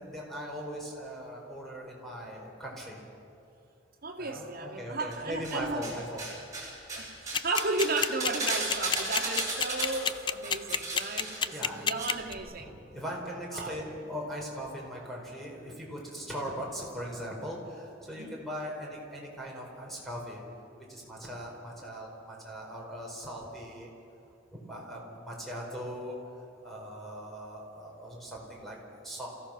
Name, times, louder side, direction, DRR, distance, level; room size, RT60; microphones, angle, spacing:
voice 1, 0.0-3.0 4.2-6.2 11.5-11.8 12.6-20.4 20.8-23.9 24.6-26.2 26.6-29.3, equal, ahead, -3 dB, 4.9 m, -40 dB
voice 2, 4.0-5.9 6.8-12.8 13.5-13.8 18.1-18.4, right 3 dB, 50° right, 0 dB, 2.3 m, -34 dB
sound 1, 5.1-5.9 6.2-12.1 12.3-12.4, right 2 dB, 15° right, 6.6 m, -35 dB
sound 2, 7.3-12.3, left 7 dB, 25° left, 0.4 m, -27 dB
27.5 x 16.0 x 6.1 m, 2.7 s
head